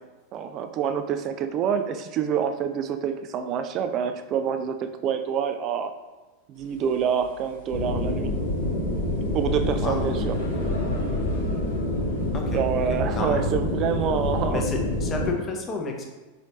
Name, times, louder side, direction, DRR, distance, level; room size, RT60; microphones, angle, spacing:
voice 1, 0.3-5.9 6.5-8.3 9.3-10.3 12.5-14.6, right 7 dB, 35° right, 8 dB, 0.3 m, -27 dB
sound 1, 6.5-15.3, left 1 dB, 70° left, 1.1 m, -42 dB
sound 2, 7.7-15.3, left 1 dB, 40° left, 1.2 m, -27 dB
voice 2, 12.3-12.6 12.9-13.5 14.5-16.1, left 3 dB, 25° left, 2 dB, 0.6 m, -31 dB
3.9 x 3.2 x 2.8 m, 1.2 s
figure-of-eight pair, 90°, 0 cm